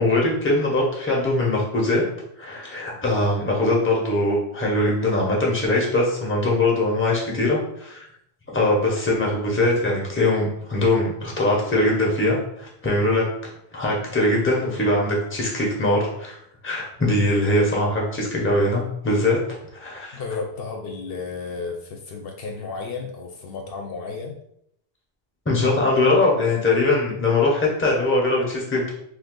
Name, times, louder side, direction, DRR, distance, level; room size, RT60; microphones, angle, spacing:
voice 1, 0.0-2.0 2.4-8.1 8.5-13.2 13.7-16.4 16.6-19.4 19.7-20.1 25.5-28.9, left 2 dB, 15° left, -2 dB, 0.7 m, -21 dB
voice 2, 20.1-24.4, left 4 dB, 70° left, 2 dB, 0.7 m, -33 dB
2.6 x 2.6 x 3.7 m, 0.74 s
omnidirectional pair, 1.0 m